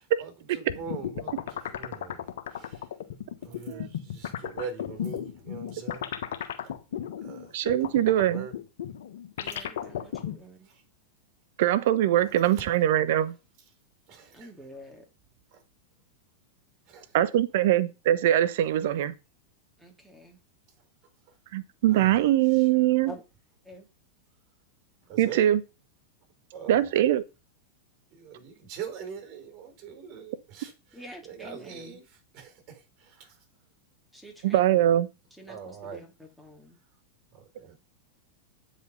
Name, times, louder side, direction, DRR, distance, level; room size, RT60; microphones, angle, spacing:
voice 1, 0.2-2.2 2.5-2.9 3.4-6.5 7.2-7.5 8.0-8.5 9.4-9.6 10.6-10.8 14.1-14.5 15.5-15.6 16.9-17.2 21.9-22.7 25.1-25.4 26.5-26.9 28.1-33.4 35.5-36.0 37.3-37.7, right 6 dB, 45° right, 4.6 m, -43 dB
sound 1, 0.7-10.4, left 10 dB, 65° left, 1.3 m, -35 dB
voice 2, 7.5-8.5 11.6-13.3 17.1-19.1 21.5-23.1 25.2-25.6 26.7-27.2 34.4-35.1, right 12 dB, 60° right, 0.8 m, -22 dB
voice 3, 9.4-10.7 14.3-15.0 19.8-20.4 23.0-23.2 23.6-23.9 30.9-32.0 34.1-34.9 35.4-36.8, equal, 5° right, 3.0 m, -47 dB
9.0 x 5.1 x 5.4 m
hypercardioid pair, 95°, 0 cm